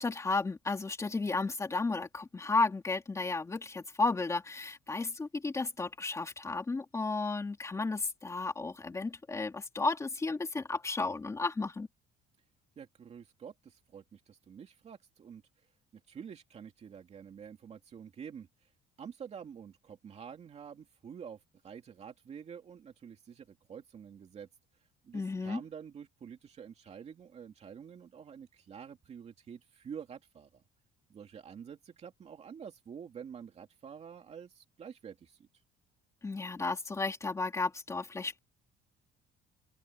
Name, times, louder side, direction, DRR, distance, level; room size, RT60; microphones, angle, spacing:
voice 1, 0.0-11.9 25.1-25.6 36.2-38.4, left 3 dB, 15° left, 2.5 m, -33 dB
voice 2, 12.8-15.4 16.1-18.5 19.0-21.4 21.6-24.5 25.0-30.6 31.1-35.4, right 7 dB, 35° right, 2.6 m, -48 dB
open air
cardioid pair, 165°, 20 cm